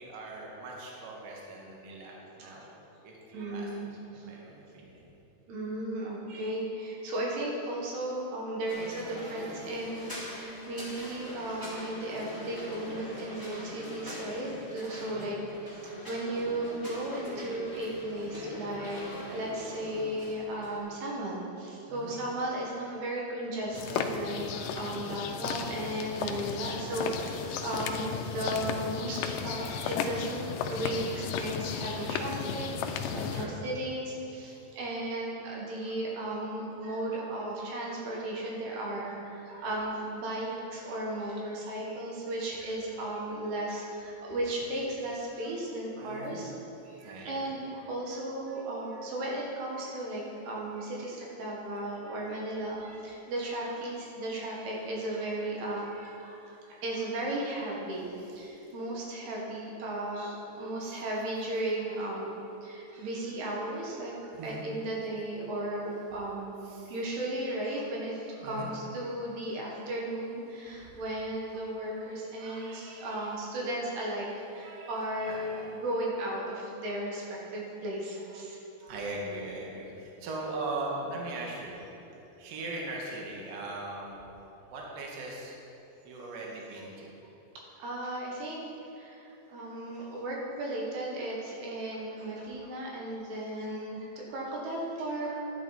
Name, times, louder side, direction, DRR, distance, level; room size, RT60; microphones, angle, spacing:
voice 1, 0.0-2.7 3.0-5.1 15.1-15.3 21.9-22.2 32.9-33.6 46.0-46.5 47.0-47.5 58.0-58.7 60.8-61.2 63.2-63.3 64.3-64.7 66.6-67.0 68.4-68.7 72.4-73.3 74.1-75.8 78.9-81.9 82.4-84.2 84.7-85.6 86.1-87.1, right 2 dB, 65° right, -2 dB, 2.9 m, -41 dB
voice 2, 3.3-4.2 5.5-46.5 46.9-58.1 58.4-62.3 62.6-66.6 66.9-78.9 87.8-88.6 89.0-95.4, right 1 dB, 90° right, -3 dB, 3.6 m, -35 dB
sound 1, 8.7-20.8, left 1 dB, 10° right, 1.6 m, -43 dB
sound 2, 23.7-33.5, left 7 dB, 85° left, 1.9 m, -34 dB
11.5 x 10.0 x 4.1 m, 3.0 s
omnidirectional pair, 4.4 m